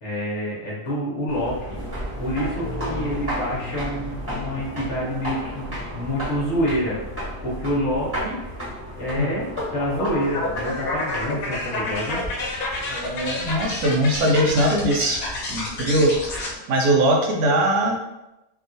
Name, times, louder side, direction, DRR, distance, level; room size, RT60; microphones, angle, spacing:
voice 1, 0.0-1.8 2.2-7.0 7.4-8.4 9.0-12.2, equal, 50° left, -6 dB, 0.9 m, -27 dB
sound 1, 1.3-16.6, equal, 10° right, 1.0 m, -34 dB
sound 2, 9.6-16.5, left 2 dB, 70° left, 1.0 m, -29 dB
voice 2, 12.9-15.2 15.5-18.0, right 1 dB, 75° right, 0 dB, 1.1 m, -21 dB
2.8 x 2.3 x 2.6 m, 0.94 s
omnidirectional pair, 1.7 m